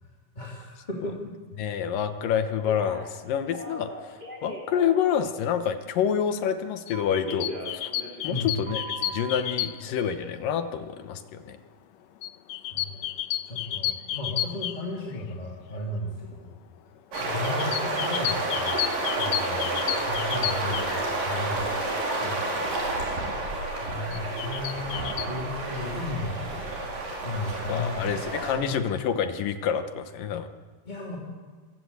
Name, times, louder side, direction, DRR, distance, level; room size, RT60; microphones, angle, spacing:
voice 1, 0.3-1.3 8.3-8.5 12.7-13.1 13.5-16.5 17.2-18.8 19.2-28.1 28.5-28.8 30.8-31.2, left 2 dB, 15° left, -3 dB, 2.2 m, -35 dB
voice 2, 1.6-4.1 4.4-7.9 8.2-11.6 27.7-30.5, left 8 dB, 70° left, 9 dB, 2.6 m, -28 dB
Telephone, 2.6-3.2 3.5-5.2 6.9-8.4 8.7-9.3, right 2 dB, 15° right, 3.9 m, -39 dB
sound 1, 6.9-10.1 12.2-15.3 17.1-20.9 24.1-25.2, left 12 dB, 85° left, 1.5 m, -32 dB
sound 2, 17.1-28.5, right 2 dB, 65° right, 5.9 m, -30 dB
26.5 x 16.0 x 8.2 m, 1.5 s
omnidirectional pair, 4.3 m